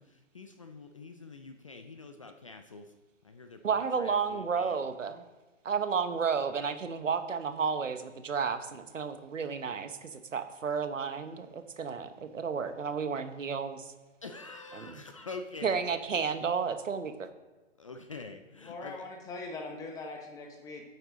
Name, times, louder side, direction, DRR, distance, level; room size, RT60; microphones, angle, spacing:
voice 1, 0.0-2.9 3.2-4.8 14.2-15.8 17.8-19.0, left 3 dB, 30° left, 7 dB, 0.4 m, -46 dB
voice 2, 3.6-5.2 5.6-13.9 14.7-15.0 15.6-17.3, right 6 dB, 85° right, 9 dB, 1.1 m, -32 dB
voice 3, 18.6-20.8, left 3 dB, 10° left, 2 dB, 0.8 m, -41 dB
9.1 x 8.3 x 3.9 m, 1.1 s
hypercardioid pair, 145°, 37 cm